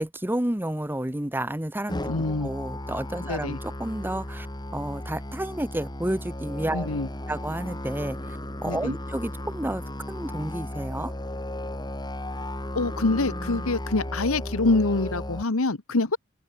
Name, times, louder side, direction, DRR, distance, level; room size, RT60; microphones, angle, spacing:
voice 1, 0.0-4.5 4.7-6.9 7.3-8.2 8.6-11.1, right 1 dB, 10° right, 1.2 m, -30 dB
Musical instrument, 1.9-15.4, left 1 dB, 20° left, 4.6 m, -35 dB
voice 2, 2.1-2.5 3.3-3.6 6.7-7.1 8.7-9.0 12.7-16.2, left 2 dB, 90° left, 1.3 m, -25 dB
open air
head